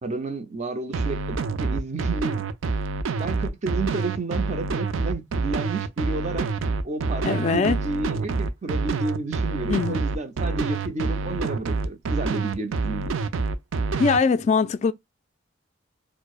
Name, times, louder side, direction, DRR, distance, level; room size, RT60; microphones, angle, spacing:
voice 1, 0.0-2.5 3.2-6.5 6.8-13.2, right 3 dB, 35° right, 0.6 m, -31 dB
sound 1, 0.9-14.2, right 4 dB, 85° right, 0.4 m, -27 dB
voice 2, 7.2-7.8 9.7-10.0 14.0-14.9, left 5 dB, 35° left, 0.3 m, -21 dB
4.5 x 2.0 x 2.3 m
head